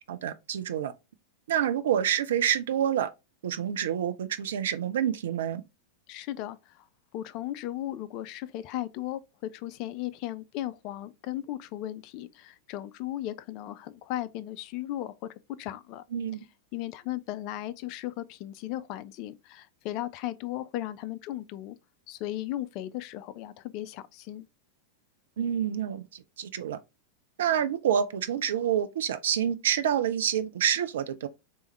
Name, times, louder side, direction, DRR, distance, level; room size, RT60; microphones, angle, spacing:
voice 1, 0.1-0.9 1.5-3.1 3.4-5.6 16.1-16.4 25.4-26.8 27.4-31.3, right 9 dB, 60° right, 0.4 m, -28 dB
voice 2, 6.1-6.8 7.1-15.2 15.6-16.0 16.7-21.8 22.1-24.5, left 14 dB, 40° left, 0.4 m, -36 dB
3.4 x 3.0 x 3.1 m
figure-of-eight pair, 90°, 0 cm